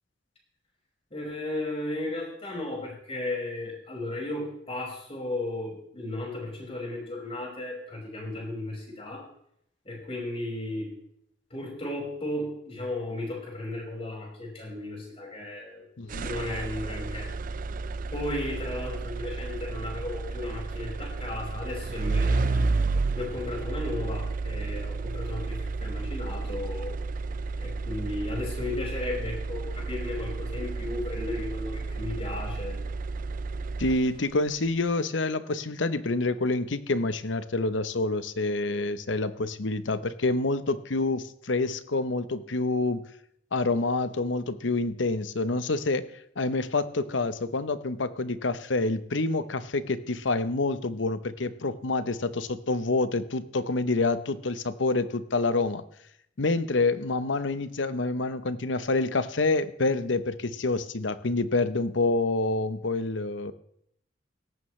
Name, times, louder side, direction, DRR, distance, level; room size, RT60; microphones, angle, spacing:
voice 1, 1.1-9.3 9.8-10.9 11.5-15.8 16.2-17.3 18.1-22.7 23.1-27.0 27.6-32.8, left 2 dB, 30° left, -2 dB, 5.6 m, -35 dB
sound 1, 16.1-34.4, right 3 dB, 45° right, 0.5 m, -32 dB
voice 2, 33.8-43.0 43.5-46.0 46.4-55.8 56.4-63.5, left 3 dB, 70° left, 13 dB, 0.9 m, -27 dB
17.5 x 14.5 x 3.2 m, 0.73 s
head